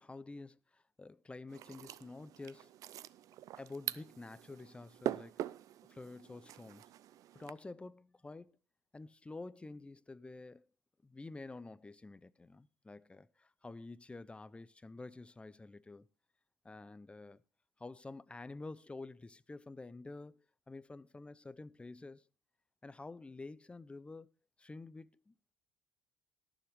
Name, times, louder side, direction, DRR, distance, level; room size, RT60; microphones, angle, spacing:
voice 1, 0.0-2.7 3.6-5.3 5.9-6.8 7.3-8.6 8.9-10.7 11.0-16.1 16.6-17.4 17.8-22.3 22.8-24.3 24.6-25.3, left 3 dB, 15° left, 0.6 m, -49 dB
sound 1, 1.5-7.5, right 12 dB, 60° right, 0.5 m, -44 dB
18.5 x 7.2 x 3.4 m
supercardioid pair, 75°, 6 cm